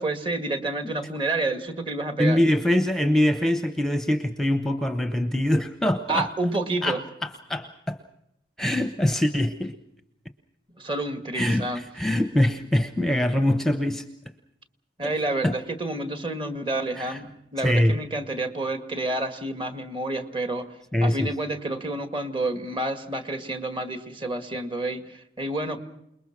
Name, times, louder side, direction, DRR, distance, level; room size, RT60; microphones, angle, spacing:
voice 1, 0.0-2.4 6.1-7.0 10.8-11.8 15.0-20.7 21.0-25.8, right 2 dB, 30° right, 8 dB, 1.9 m, -29 dB
voice 2, 2.2-6.3 6.8-8.0 8.6-9.7 11.3-14.0 15.0-15.1 15.4-15.6 17.0-17.2 17.6-18.0 20.9-21.3, left 1 dB, ahead, 8 dB, 0.9 m, -23 dB
28.5 x 21.0 x 6.0 m, 0.80 s
head